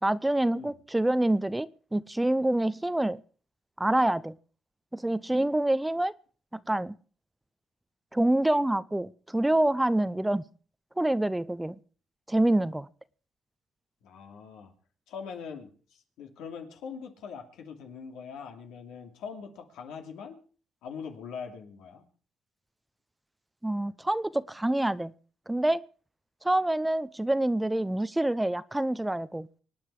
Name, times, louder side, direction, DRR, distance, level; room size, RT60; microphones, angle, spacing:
voice 1, 0.0-3.2 3.8-4.4 4.9-6.1 6.5-6.9 8.1-10.4 11.0-11.8 12.3-12.9 23.6-25.1 25.5-25.8 26.4-29.5, right 1 dB, 10° right, 17 dB, 0.6 m, -26 dB
voice 2, 14.0-14.7 15.1-20.4 20.8-22.0, left 6 dB, 90° left, 4 dB, 2.8 m, -42 dB
24.5 x 9.5 x 4.9 m, 0.40 s
cardioid pair, 90°, 0 cm